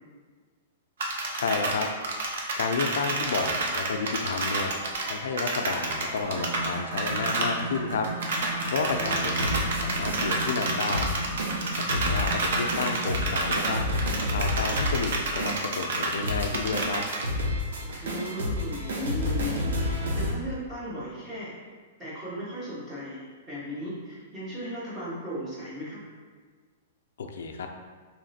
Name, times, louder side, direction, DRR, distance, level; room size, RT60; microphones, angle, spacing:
sound 1, 1.0-6.7 7.0-7.5 7.8-7.9 8.0-17.2, right 2 dB, 60° right, 0.6 m, -30 dB
voice 1, 1.3-1.9 2.6-4.7 5.1-8.1 8.7-11.1 11.7-14.0 14.3-17.0 27.2-27.7, left 4 dB, 85° left, 4 dB, 0.4 m, -31 dB
sound 2, 4.6-20.3, left 1 dB, 85° right, 0.9 m, -31 dB
sound 3, 6.2-14.6 16.0-16.2 16.6-16.7 17.4-17.5, right 2 dB, 45° right, 1.1 m, -36 dB
voice 2, 18.0-21.5 22.0-26.0, left 1 dB, 10° right, -10 dB, 1.1 m, -36 dB
3.1 x 2.9 x 4.1 m, 1.5 s
hypercardioid pair, 175°, 0 cm